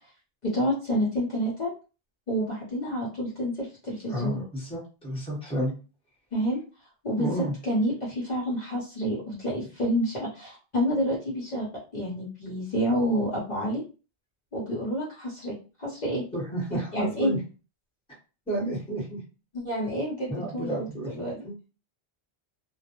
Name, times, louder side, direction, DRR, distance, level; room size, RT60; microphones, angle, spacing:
voice 1, 0.4-1.7 2.3-4.4 6.3-6.6 7.0-7.3 7.6-11.7 11.9-13.8 14.5-16.2 16.9-17.3 19.5-21.4, equal, 45° left, -6 dB, 0.8 m, -28 dB
voice 2, 4.1-5.7 7.2-7.5 16.3-17.4 18.5-19.2 20.3-21.5, right 1 dB, 5° left, -4 dB, 0.9 m, -31 dB
2.2 x 2.0 x 2.8 m, 0.33 s
omnidirectional pair, 1.1 m